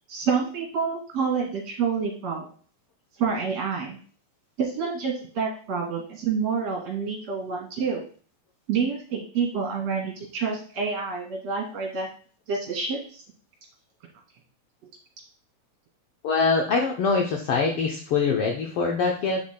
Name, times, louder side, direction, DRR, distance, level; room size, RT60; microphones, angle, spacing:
voice 1, 0.1-2.5 3.2-4.0 4.6-8.0 8.7-12.1 12.5-13.2, right 5 dB, 60° right, -1 dB, 3.5 m, -28 dB
voice 2, 16.2-19.4, left 4 dB, 75° left, 1 dB, 1.3 m, -24 dB
8.7 x 5.9 x 2.2 m, 0.43 s
omnidirectional pair, 3.4 m